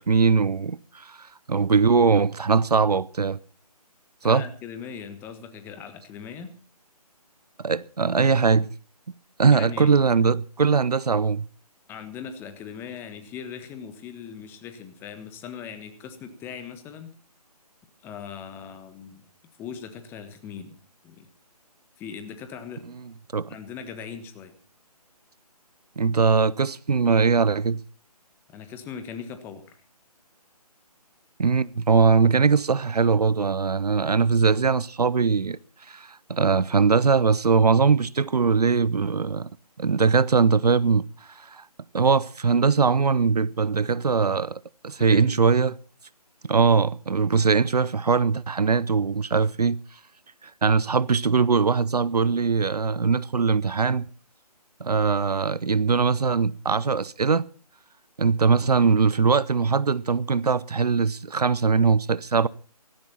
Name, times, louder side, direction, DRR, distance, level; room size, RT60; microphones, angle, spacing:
voice 1, 0.0-3.4 4.2-4.4 7.6-8.7 9.4-11.5 23.3-23.5 26.0-27.8 31.4-35.6 35.9-39.5 39.8-41.1 41.4-41.6 41.9-45.7 46.4-49.8 50.4-54.0 54.8-57.5 58.2-62.5, right 5 dB, 75° right, 0.7 m, -21 dB
voice 2, 4.2-6.5 9.5-10.0 11.9-17.1 18.0-19.2 19.6-20.8 21.0-21.3 22.0-22.8 23.5-24.5 28.5-29.6 45.0-45.4, left 7 dB, 10° left, 1.4 m, -39 dB
17.0 x 16.5 x 4.3 m
figure-of-eight pair, 150°, 20 cm